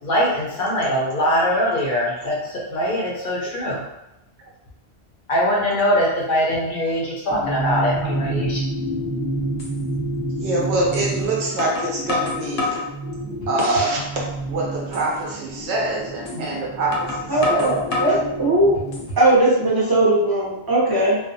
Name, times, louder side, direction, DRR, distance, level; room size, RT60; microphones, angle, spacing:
voice 1, 0.0-3.8 5.3-8.6, equal, 60° left, -4 dB, 0.7 m, -22 dB
sound 1, 7.3-19.0, right 1 dB, 10° left, 0.9 m, -29 dB
sound 2, 9.0-9.1 9.6-9.7 10.9-11.1 11.6-12.9 13.4-14.0 14.3-14.4 14.9-15.1 16.3-16.4 16.9-18.2 18.7-19.3, left 3 dB, 85° left, 0.9 m, -28 dB
voice 2, 10.4-12.8 13.5-17.7, right 2 dB, 80° right, -2 dB, 1.0 m, -25 dB
voice 3, 17.3-18.8 19.2-21.2, right 1 dB, 25° right, -6 dB, 0.6 m, -18 dB
2.3 x 2.2 x 2.6 m, 0.89 s
omnidirectional pair, 1.1 m